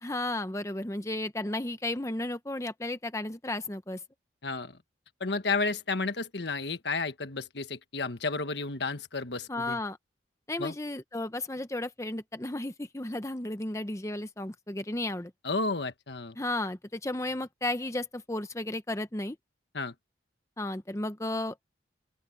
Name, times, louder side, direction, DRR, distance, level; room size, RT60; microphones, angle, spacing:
voice 1, 0.0-4.0 9.5-10.0 10.5-15.3 16.4-19.4 20.6-21.7, left 2 dB, 15° left, 0.7 m, -34 dB
voice 2, 4.4-4.8 5.2-9.8 10.6-10.7 15.4-16.4 19.7-19.9, left 3 dB, 70° left, 1.4 m, -32 dB
open air
head